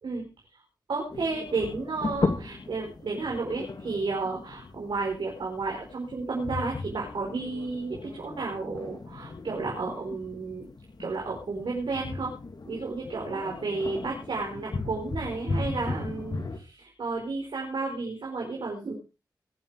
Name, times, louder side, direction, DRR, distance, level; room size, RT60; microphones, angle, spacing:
voice 1, 0.9-10.7 11.0-12.3 12.7-18.9, right 3 dB, 90° right, -1 dB, 5.0 m, -32 dB
sound 1, 1.1-16.6, left 3 dB, 60° left, 2.6 m, -36 dB
22.0 x 8.0 x 4.9 m, 0.32 s
cardioid pair, 50°, 8 cm